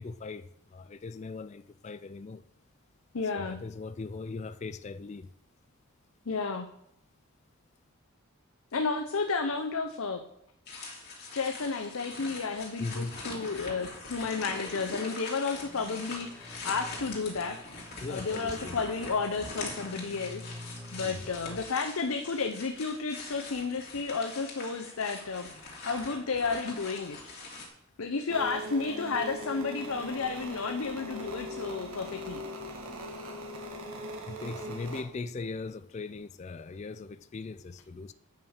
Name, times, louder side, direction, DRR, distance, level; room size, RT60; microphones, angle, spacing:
voice 1, 0.0-2.4 3.3-5.3 12.8-13.2 18.0-18.8 21.0-21.3 25.5-25.6 34.3-38.1, left 3 dB, 30° left, 0.3 m, -39 dB
voice 2, 3.1-3.6 6.3-6.7 8.7-10.2 11.3-17.6 18.1-25.5 25.9-27.2 28.0-32.4, left 4 dB, 75° left, 0.7 m, -32 dB
sound 1, 10.7-27.7, left 2 dB, 45° left, 2.5 m, -43 dB
sound 2, 15.5-21.6, left 1 dB, 10° right, 2.0 m, -49 dB
sound 3, 28.3-35.0, equal, 80° right, 1.7 m, -40 dB
8.9 x 5.8 x 6.5 m
head